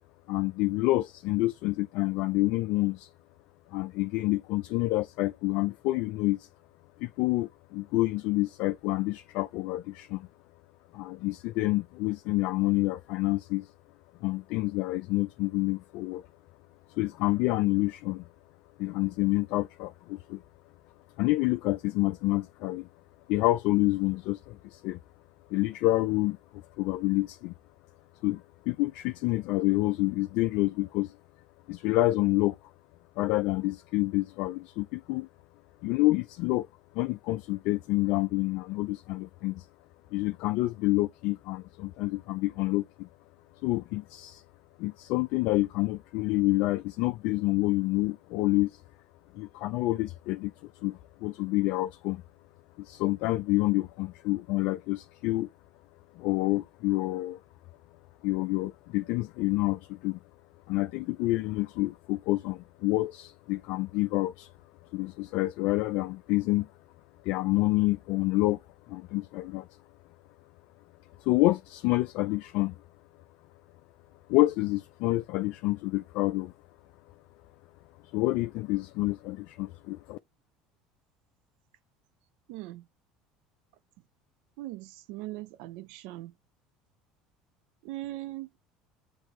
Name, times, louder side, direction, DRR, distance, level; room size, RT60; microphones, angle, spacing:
voice 1, 0.3-3.1 3.7-6.5 7.0-10.3 10.9-13.7 14.2-16.2 16.9-18.3 18.8-20.4 21.2-22.9 23.3-25.0 25.5-27.5 28.2-31.2 31.7-32.6 33.2-35.3 35.8-36.7 36.9-39.7 40.1-43.1 43.6-44.4 44.8-48.8 49.3-52.2 52.8-55.5 56.2-57.4 58.2-60.2 60.7-64.5 64.9-66.7 67.2-68.6 68.9-69.7 71.2-72.8 74.3-76.5 78.1-80.2, left 19 dB, 70° left, 0.3 m, -28 dB
voice 2, 82.5-82.9 84.6-86.3 87.8-88.5, right 17 dB, 75° right, 0.5 m, -40 dB
6.0 x 2.7 x 3.2 m
supercardioid pair, 105°, 2 cm